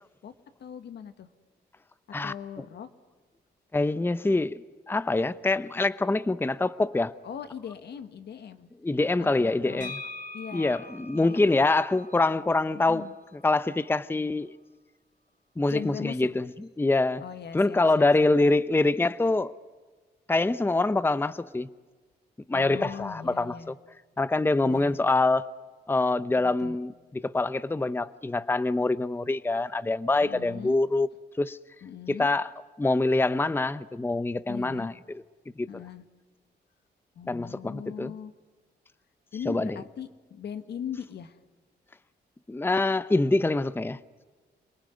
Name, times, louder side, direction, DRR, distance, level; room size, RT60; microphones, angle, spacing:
voice 1, 0.6-1.3 2.2-2.9 7.2-8.7 9.2-9.9 10.3-10.8 11.2-11.7 12.7-13.1 15.6-16.3 17.2-18.1 18.4-18.5 22.5-23.7 24.6-25.0 26.4-26.8 30.2-30.8 31.8-32.3 34.5-34.9 35.7-36.0 37.2-38.3 39.3-41.4, left 8 dB, 70° left, 1.8 m, -40 dB
voice 2, 3.7-4.6 4.9-7.1 8.8-9.9 10.5-13.0 13.4-14.5 15.6-16.5 16.8-17.2 17.5-19.5 20.3-21.7 22.5-23.7 24.2-25.5 25.9-31.1 31.4-31.6 32.1-32.5 32.8-34.9 35.6-35.7 37.3-38.1 39.5-39.8 42.5-44.0, left 2 dB, 10° left, 0.7 m, -25 dB
sound 1, 9.8-13.6, left 2 dB, 45° left, 4.3 m, -44 dB
28.5 x 19.0 x 9.6 m
cardioid pair, 80°, 18 cm